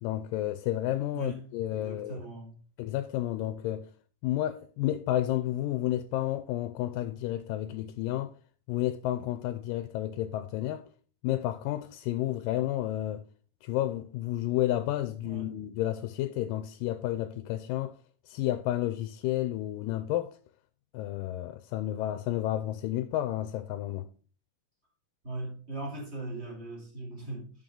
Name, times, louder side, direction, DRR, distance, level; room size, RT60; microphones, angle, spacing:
voice 1, 0.0-2.2 2.8-3.9 4.2-8.3 8.7-10.8 11.2-13.2 13.6-17.9 18.3-20.4 20.9-24.1, left 14 dB, 80° left, 2.2 m, -31 dB
voice 2, 1.1-2.6 15.2-15.5 25.2-27.5, right 2 dB, 20° right, 3.0 m, -39 dB
10.5 x 6.6 x 3.8 m
omnidirectional pair, 4.0 m